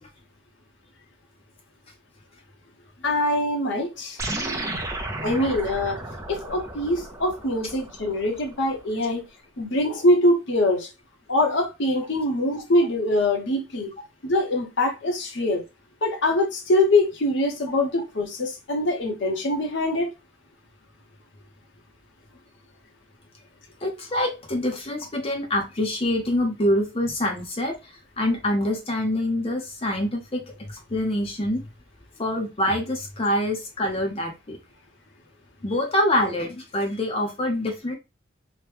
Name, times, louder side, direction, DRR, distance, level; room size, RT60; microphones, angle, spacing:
voice 1, 3.0-4.2 5.2-6.0 6.3-9.3 9.6-10.9 11.3-13.9 14.2-15.6 16.0-20.1, left 1 dB, 65° left, 0.9 m, -23 dB
sound 1, 4.2-8.8, right 2 dB, 15° right, 0.5 m, -34 dB
voice 2, 23.8-30.4 30.7-31.6 32.2-34.6 35.6-38.0, left 1 dB, 30° left, 0.6 m, -25 dB
3.0 x 2.2 x 3.2 m
head